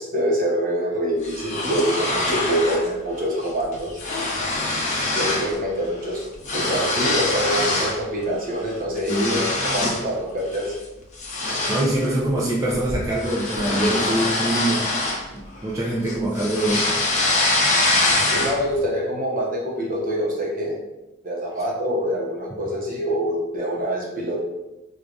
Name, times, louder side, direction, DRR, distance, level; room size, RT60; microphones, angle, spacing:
voice 1, 0.0-3.9 5.2-6.2 6.5-10.7 18.3-20.7 21.2-24.4, equal, 45° right, -3 dB, 0.9 m, -25 dB
sound 1, 1.2-2.9 3.2-3.5 3.7-5.5 5.8-8.0 8.4-10.1 10.5-10.7 11.2-15.7 16.1-18.8, left 2 dB, 40° left, 0.7 m, -24 dB
voice 2, 9.1-9.4 11.7-14.8 15.3-16.9, right 1 dB, 15° right, -6 dB, 0.5 m, -24 dB
4.6 x 2.4 x 2.5 m, 0.98 s
head